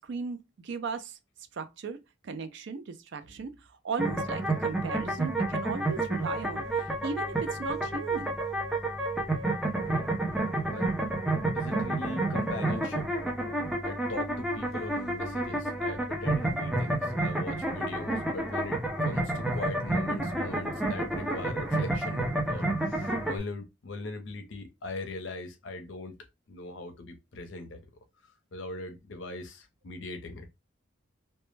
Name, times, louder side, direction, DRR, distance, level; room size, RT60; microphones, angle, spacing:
voice 1, 0.0-1.2 1.5-2.0 2.2-3.5 3.8-8.4, right 4 dB, 60° right, 0.4 m, -37 dB
sound 1, 4.0-23.4, right 2 dB, ahead, 0.4 m, -30 dB
voice 2, 11.5-13.1 13.8-26.1 26.5-27.8 28.5-30.5, left 2 dB, 65° left, 0.6 m, -40 dB
2.1 x 2.0 x 3.1 m
head